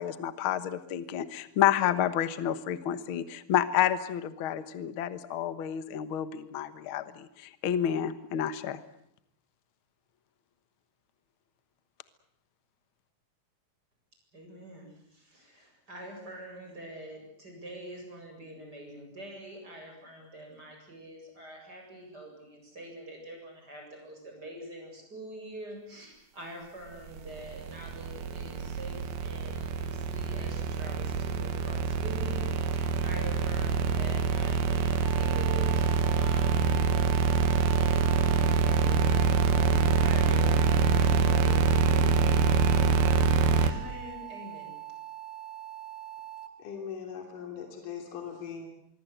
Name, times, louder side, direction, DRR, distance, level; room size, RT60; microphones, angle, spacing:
voice 1, 0.0-8.8, left 10 dB, 85° left, 13 dB, 1.1 m, -29 dB
voice 2, 14.3-36.8 37.4-38.2 38.5-39.1 39.8-43.0 43.6-44.7, right 1 dB, 25° right, 2 dB, 8.4 m, -45 dB
sound 1, 27.2-43.7, right 6 dB, 80° right, 3.5 m, -25 dB
sound 2, 35.0-46.5, right 13 dB, 20° left, 1.5 m, -43 dB
voice 3, 46.6-48.7, left 7 dB, 60° left, 3 dB, 4.6 m, -40 dB
25.5 x 23.0 x 8.0 m, 0.72 s
omnidirectional pair, 4.4 m